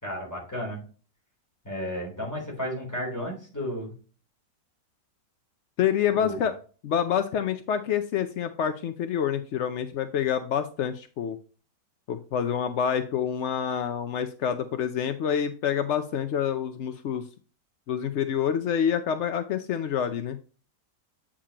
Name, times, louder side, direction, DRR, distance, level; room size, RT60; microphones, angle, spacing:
voice 1, 0.0-0.8 1.6-3.9 6.2-6.4, equal, 10° left, -2 dB, 3.4 m, -33 dB
voice 2, 5.8-6.5 6.8-11.4 12.1-17.3 17.9-20.4, left 8 dB, 75° left, 9 dB, 0.6 m, -27 dB
8.4 x 5.0 x 2.9 m, 0.38 s
omnidirectional pair, 1.9 m